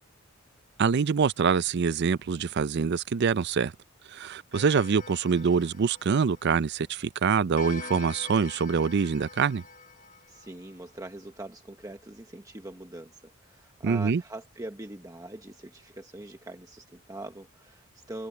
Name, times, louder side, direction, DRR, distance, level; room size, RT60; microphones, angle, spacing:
voice 1, 0.8-3.7 4.1-9.6 13.8-14.2, right 6 dB, 55° right, 0.4 m, -25 dB
Clock, 4.5-6.8 7.6-11.0, left 4 dB, 40° left, 1.0 m, -45 dB
voice 2, 10.3-18.3, right 1 dB, 15° right, 1.2 m, -42 dB
head